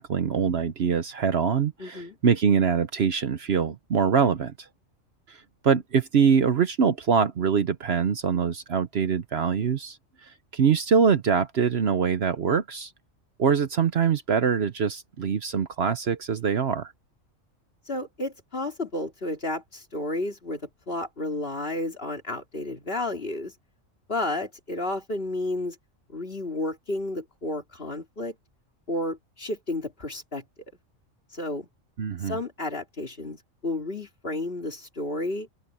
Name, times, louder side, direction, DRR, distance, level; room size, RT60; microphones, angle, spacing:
voice 1, 0.0-4.7 5.3-10.0 10.2-12.9 13.4-16.9 32.0-32.4, right 6 dB, 55° right, 1.0 m, -24 dB
voice 2, 1.8-2.2 17.9-23.5 24.1-25.8 26.1-28.3 28.9-30.4 31.3-31.7 32.2-35.5, left 2 dB, 45° left, 3.2 m, -32 dB
open air
omnidirectional pair, 1.4 m